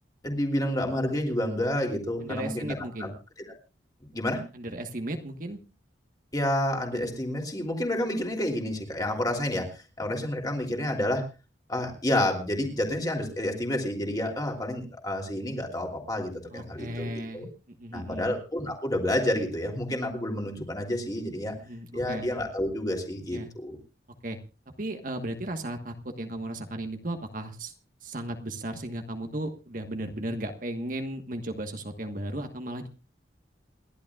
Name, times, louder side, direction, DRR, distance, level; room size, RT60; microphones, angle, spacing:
voice 1, 0.2-3.1 4.1-4.4 6.3-11.2 11.7-17.5 17.9-21.5 21.9-23.8, left 1 dB, 20° left, 1 dB, 3.1 m, -29 dB
voice 2, 2.2-3.2 4.5-5.6 16.5-18.4 21.6-22.3 23.3-23.5 24.2-24.4 24.8-27.7 28.0-32.9, right 1 dB, 45° right, 6 dB, 1.4 m, -35 dB
29.0 x 11.5 x 2.4 m, 0.32 s
head